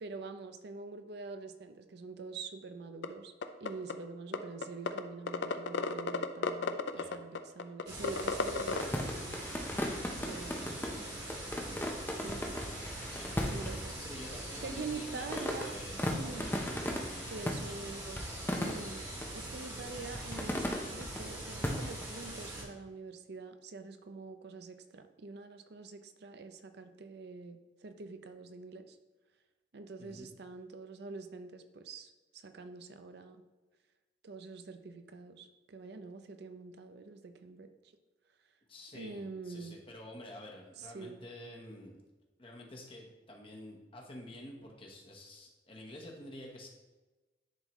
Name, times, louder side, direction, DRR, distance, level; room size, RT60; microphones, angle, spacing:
voice 1, 0.0-3.3 3.6-9.4 10.2-10.9 12.2-12.6 13.5-14.0 14.6-15.7 16.1-16.6 17.3-18.2 18.6-19.0 19.3-29.0 29.7-33.4 34.2-37.7 38.9-39.8 40.8-41.2, right 3 dB, 60° right, 8 dB, 0.5 m, -45 dB
sound 1, 3.0-3.1 3.4-3.9 4.3-4.4 4.6-5.0 5.3-8.8, left 5 dB, 70° left, 0.5 m, -32 dB
sound 2, 7.9-22.6, right 1 dB, 20° right, 1.5 m, -43 dB
sound 3, 8.7-19.3 20.0-21.2 21.6-22.2, left 1 dB, 10° left, 0.6 m, -38 dB
voice 2, 10.2-11.2 11.6-12.0 12.6-13.4 13.7-17.7 19.0-19.1 30.0-30.3 38.7-42.0 42.4-46.7, left 1 dB, 30° left, 0 dB, 1.1 m, -50 dB
10.5 x 3.7 x 3.0 m, 1.2 s
head